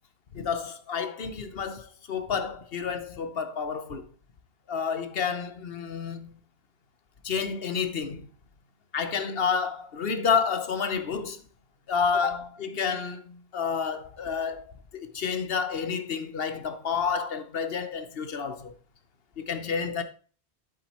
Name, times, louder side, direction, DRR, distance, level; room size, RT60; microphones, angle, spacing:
voice 1, 0.3-4.1 4.7-6.3 7.2-8.3 8.9-11.4 11.9-14.7 14.9-18.7 19.4-20.0, left 6 dB, 60° left, 1.1 m, -30 dB
8.6 x 7.4 x 3.0 m
omnidirectional pair, 1.1 m